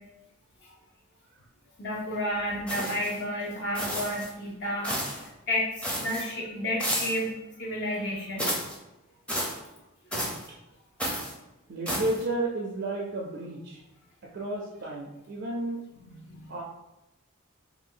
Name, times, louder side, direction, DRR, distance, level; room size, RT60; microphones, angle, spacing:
voice 1, 1.8-5.2 5.5-8.5 10.1-10.3 16.1-16.5, left 1 dB, 55° left, -2 dB, 0.6 m, -31 dB
sound 1, 2.7-3.2 3.7-4.3 4.8-5.3 5.8-6.3 6.8-7.3 8.4-8.8 9.3-9.6 10.1-10.5 11.0-11.3 11.9-12.2, equal, 5° left, 0.5 m, -31 dB
voice 2, 11.7-13.8 14.3-15.9 16.5-16.6, right 2 dB, 55° right, -2 dB, 0.4 m, -32 dB
2.6 x 2.3 x 3.6 m, 0.95 s
head